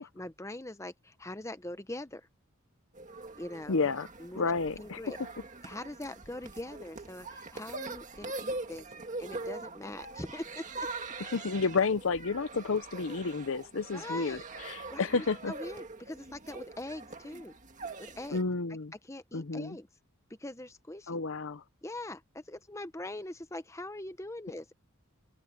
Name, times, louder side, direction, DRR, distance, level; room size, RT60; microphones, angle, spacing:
voice 1, 0.0-2.3 3.4-3.8 4.2-4.5 4.8-5.2 5.6-8.9 9.2-10.9 13.9-14.4 14.9-17.6 18.0-18.4 19.0-19.9 20.3-21.2 21.8-24.7, left 1 dB, 15° left, 0.9 m, -42 dB
sound 1, 2.9-18.4, right 3 dB, 35° right, 1.9 m, -43 dB
voice 2, 3.7-4.1 4.4-5.0 11.2-15.5 18.3-18.9 19.3-19.8 21.1-21.6, left 4 dB, 65° left, 0.7 m, -31 dB
open air
head